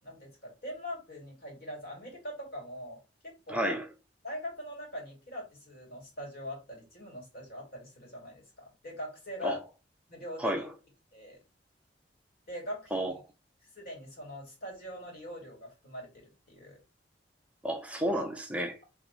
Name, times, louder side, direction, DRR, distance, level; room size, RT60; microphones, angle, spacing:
voice 1, 0.0-3.8 4.2-9.6 10.1-10.7 11.1-11.4 12.5-13.1 13.7-16.8, equal, 55° left, 2.5 m, -42 dB
voice 2, 3.5-3.8 9.4-9.6 10.4-10.7 12.9-13.1 17.6-18.8, equal, 5° right, 0.5 m, -31 dB
3.3 x 3.1 x 4.0 m
head